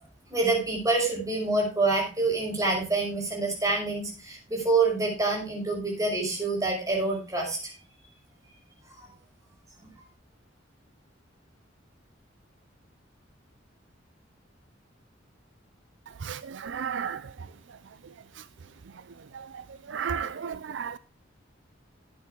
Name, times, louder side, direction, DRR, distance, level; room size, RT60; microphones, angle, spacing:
voice 1, 0.3-7.6, right 3 dB, 20° right, 6.0 m, -26 dB
voice 2, 16.2-17.2 19.9-21.0, right 7 dB, 70° right, 0.4 m, -33 dB
13.5 x 8.7 x 3.7 m
head